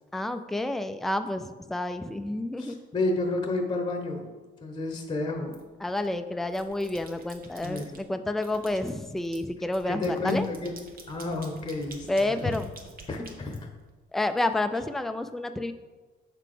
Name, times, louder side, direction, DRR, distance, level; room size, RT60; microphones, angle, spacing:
voice 1, 0.1-2.8 5.8-10.5 12.1-12.7 14.1-15.7, left 1 dB, ahead, 8 dB, 0.3 m, -29 dB
voice 2, 2.6-4.3 4.6-5.6 7.6-8.0 9.9-10.7 11.1-12.5 13.1-13.6, left 2 dB, 20° left, 3 dB, 0.8 m, -30 dB
sound 1, 5.5-6.1 6.5-8.0 8.4-14.2, right 3 dB, 45° right, 1.1 m, -49 dB
6.5 x 4.0 x 4.9 m, 1.3 s
cardioid pair, 105°, 20 cm